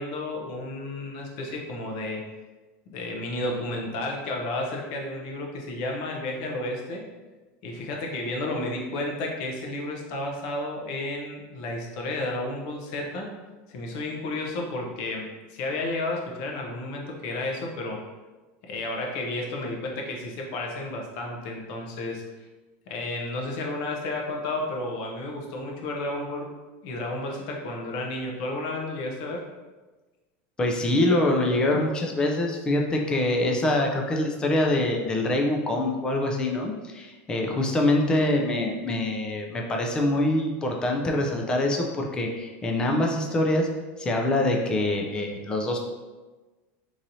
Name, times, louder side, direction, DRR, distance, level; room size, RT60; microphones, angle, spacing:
voice 1, 0.0-2.2 2.9-7.0 7.6-13.3 13.7-18.0 18.7-22.2 22.9-26.5 26.8-29.4, left 2 dB, 55° left, 0 dB, 0.7 m, -32 dB
voice 2, 30.6-43.7 44.0-45.8, left 1 dB, 15° left, 1 dB, 0.4 m, -24 dB
4.0 x 3.0 x 2.7 m, 1.2 s
supercardioid pair, 165°, 6 cm